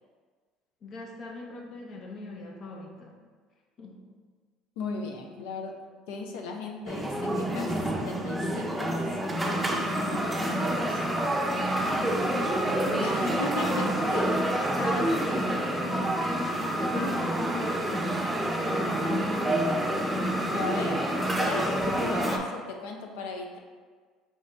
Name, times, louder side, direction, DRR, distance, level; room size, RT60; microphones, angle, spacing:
voice 1, 0.8-3.2 3.8-4.0 11.9-14.4 14.7-20.7 21.8-22.3, left 2 dB, 50° left, 0 dB, 0.8 m, -40 dB
voice 2, 4.8-5.7 6.1-11.0 13.0-14.3 20.5-21.0 21.4-23.6, left 3 dB, 85° left, 2 dB, 0.5 m, -36 dB
sound 1, 6.9-22.4, right 1 dB, 10° right, 0.6 m, -28 dB
4.9 x 2.7 x 3.2 m, 1.5 s
supercardioid pair, 90°, 0 cm